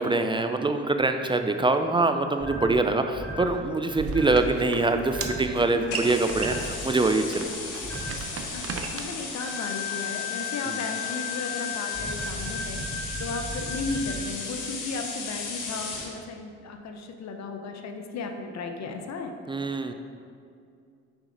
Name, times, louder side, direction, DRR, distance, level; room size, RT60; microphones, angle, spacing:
voice 1, 0.0-7.4 19.5-19.9, right 3 dB, 15° right, 7 dB, 0.4 m, -24 dB
sound 1, 2.4-2.8 3.1-3.5 4.1-4.4 5.1-5.5 6.3-6.7 7.8-8.2 9.4-14.2, left 4 dB, 45° left, 1.5 m, -35 dB
sound 2, 3.9-9.0, right 4 dB, 50° right, 0.7 m, -36 dB
sound 3, 5.9-16.1, left 4 dB, 85° left, 1.4 m, -36 dB
voice 2, 8.5-19.3, left 3 dB, 65° left, 5 dB, 0.8 m, -35 dB
7.1 x 5.0 x 3.9 m, 2.4 s
cardioid pair, 90°, 30 cm